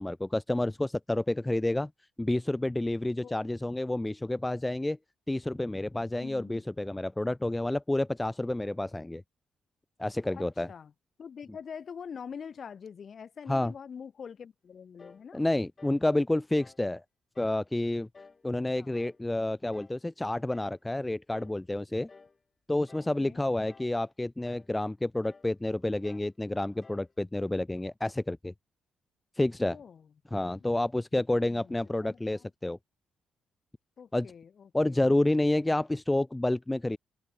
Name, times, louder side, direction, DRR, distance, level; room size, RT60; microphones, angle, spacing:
voice 1, 0.0-1.9 2.2-5.0 5.3-9.2 10.0-10.7 13.5-13.7 15.3-17.0 17.4-18.1 18.4-22.1 22.7-28.5 29.4-29.8 30.3-32.8 34.1-34.3 34.7-37.0, left 1 dB, 10° left, 0.3 m, -29 dB
voice 2, 6.2-6.6 10.3-10.9 11.2-15.5 18.8-18.9 23.2-23.4 29.6-30.1 31.1-32.5 34.0-35.0, left 7 dB, 50° left, 7.7 m, -45 dB
sound 1, 15.0-15.3 15.8-16.1 16.6-16.9 17.3-17.6 18.1-18.5 18.9-19.2 19.7-20.0 20.5-20.8 21.3-21.6 22.1-22.4 22.9-23.2 23.7-24.0 24.4-24.7 25.2-25.5 26.0-26.3 26.8-27.1, left 4 dB, 30° left, 5.1 m, -55 dB
open air
cardioid pair, 90°, 0 cm